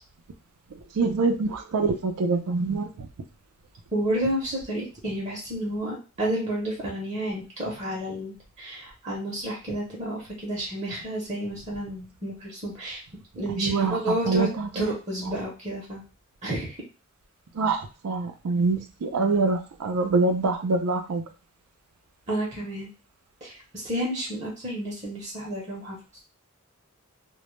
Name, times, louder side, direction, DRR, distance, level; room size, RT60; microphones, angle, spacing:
voice 1, 0.9-3.1 13.5-14.7 15.3-15.4 17.5-21.2, right 3 dB, 90° right, 5 dB, 0.4 m, -25 dB
voice 2, 3.9-13.0 13.4-14.5 14.8-16.0 16.4-16.8 22.3-22.9 23.4-26.0, right 1 dB, 30° right, -3 dB, 0.7 m, -30 dB
2.1 x 2.1 x 3.0 m, 0.32 s
head